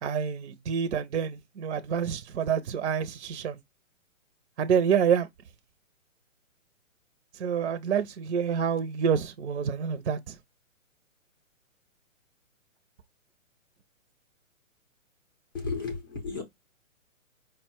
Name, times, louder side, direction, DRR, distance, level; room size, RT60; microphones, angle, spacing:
voice 1, 0.0-3.6 4.6-5.3 7.3-10.4, right 7 dB, 55° right, 0.6 m, -27 dB
voice 2, 15.5-16.4, left 4 dB, 15° left, 0.5 m, -33 dB
5.0 x 2.1 x 4.4 m
hypercardioid pair, 165°, 40 cm